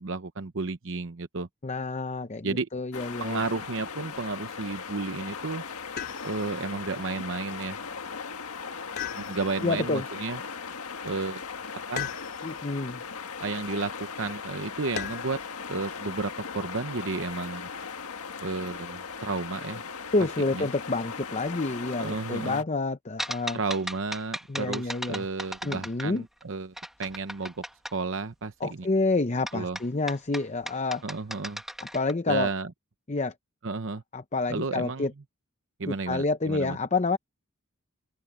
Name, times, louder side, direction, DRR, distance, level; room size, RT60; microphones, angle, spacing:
voice 1, 0.0-1.5 2.4-2.7 3.2-5.6 6.2-7.8 9.1-10.4 11.0-11.4 11.9-12.1 13.4-13.9 14.2-15.4 15.7-17.7 18.4-19.8 20.5-20.7 22.0-22.6 23.5-27.6 27.9-28.9 29.5-29.8 31.0-31.6 32.3-32.7 33.6-34.0 34.5-35.1 35.8-36.8, right 3 dB, 60° right, 0.8 m, -32 dB
voice 2, 1.6-3.4 9.6-10.0 12.4-13.0 20.1-23.6 24.5-25.2 25.6-26.2 28.6-31.0 31.9-32.5 33.1-33.3 34.1-35.1 35.9-37.2, left 3 dB, 30° left, 0.7 m, -28 dB
sound 1, 2.9-22.6, left 5 dB, 85° left, 1.6 m, -38 dB
sound 2, 6.0-6.6 9.0-9.8 12.0-12.7 15.0-15.5 17.2-17.8, left 8 dB, 45° left, 2.7 m, -37 dB
sound 3, 23.2-26.4 26.8-28.0 29.5-32.1, equal, ahead, 1.7 m, -36 dB
open air
head